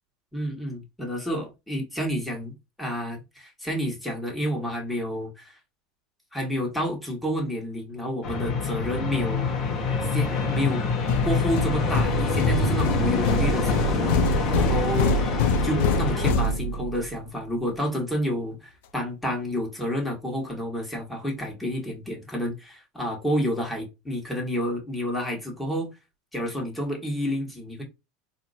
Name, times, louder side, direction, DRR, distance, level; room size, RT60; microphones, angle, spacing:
voice 1, 0.3-2.5 2.8-5.6 6.3-9.5 10.1-10.8 11.2-15.1 15.6-25.9 26.3-27.8, equal, 5° left, 1.7 m, -29 dB
sound 1, 8.2-16.3, left 4 dB, 40° left, 1.2 m, -26 dB
sound 2, 11.1-17.1, left 2 dB, 75° left, 0.7 m, -25 dB
4.3 x 2.9 x 2.6 m
supercardioid pair, 135°, 0 cm